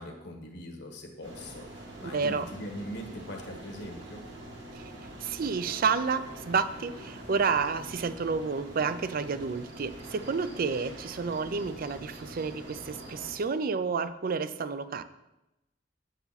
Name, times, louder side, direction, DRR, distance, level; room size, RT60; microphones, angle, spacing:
voice 1, 0.0-4.2, equal, 65° left, 2 dB, 1.5 m, -41 dB
sound 1, 1.2-13.3, right 1 dB, 70° right, 2.0 m, -45 dB
voice 2, 2.1-2.4 4.7-4.8 5.2-15.0, right 5 dB, 50° right, 13 dB, 0.4 m, -30 dB
8.2 x 7.0 x 4.1 m, 0.94 s
head